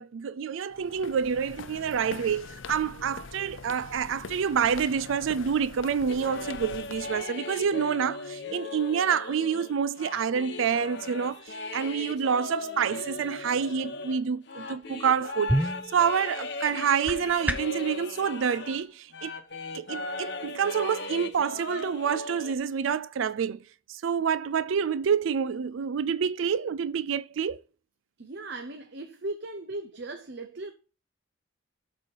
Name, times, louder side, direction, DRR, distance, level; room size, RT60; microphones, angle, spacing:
voice 1, 0.0-19.3 19.7-23.6 23.9-27.6, right 7 dB, 75° right, 0.4 m, -28 dB
sound 1, 0.7-7.2, left 5 dB, 70° left, 0.5 m, -43 dB
sound 2, 6.1-18.9 19.1-22.5, left 3 dB, 55° left, 1.0 m, -38 dB
sound 3, 15.0-17.9, right 1 dB, 5° right, 0.6 m, -31 dB
voice 2, 28.2-30.7, right 2 dB, 55° right, 0.8 m, -37 dB
12.5 x 4.3 x 4.6 m
head